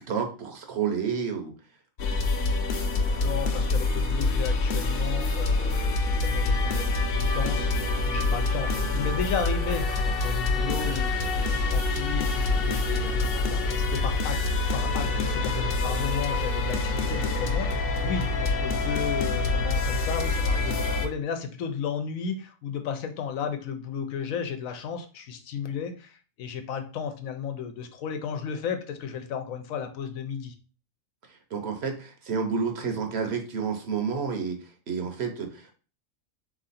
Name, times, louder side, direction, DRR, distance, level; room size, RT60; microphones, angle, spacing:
voice 1, 0.0-1.5 31.3-35.7, right 6 dB, 55° right, 4 dB, 1.0 m, -30 dB
sound 1, 2.0-21.1, left 3 dB, 55° left, 0.8 m, -26 dB
voice 2, 3.1-6.8 7.2-14.4 14.7-30.5, left 7 dB, 90° left, 7 dB, 1.1 m, -34 dB
3.7 x 3.1 x 4.1 m, 0.37 s
omnidirectional pair, 1.4 m